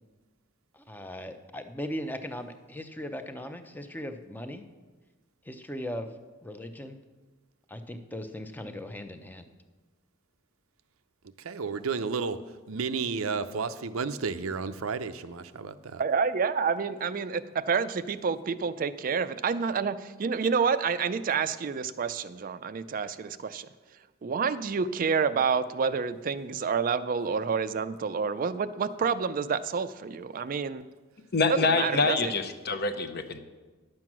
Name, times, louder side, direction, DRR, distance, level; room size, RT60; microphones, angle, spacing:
voice 1, 0.7-4.7 5.4-6.1 6.4-7.0 7.7-9.5, left 1 dB, 10° left, 8 dB, 0.6 m, -38 dB
voice 2, 11.4-16.0, right 5 dB, 90° right, 11 dB, 0.6 m, -32 dB
voice 3, 16.0-23.7 24.2-30.9 31.5-32.3, right 5 dB, 40° right, 13 dB, 0.4 m, -28 dB
voice 4, 31.3-33.4, left 4 dB, 50° left, 9 dB, 0.8 m, -26 dB
10.5 x 7.6 x 6.1 m, 1.3 s
head